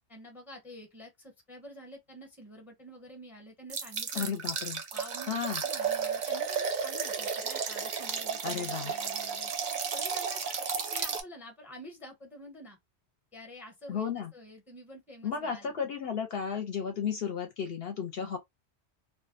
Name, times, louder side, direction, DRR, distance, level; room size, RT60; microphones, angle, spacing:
voice 1, 0.1-4.4 4.9-9.5 9.9-10.6 10.9-12.8 13.3-15.7, equal, ahead, 0.7 m, -49 dB
sound 1, 3.7-11.2, right 6 dB, 55° right, 0.5 m, -33 dB
voice 2, 4.1-4.8 5.3-5.6 8.4-8.9 13.9-14.3 15.2-18.4, left 7 dB, 65° left, 0.7 m, -33 dB
2.4 x 2.1 x 2.5 m
omnidirectional pair, 1.2 m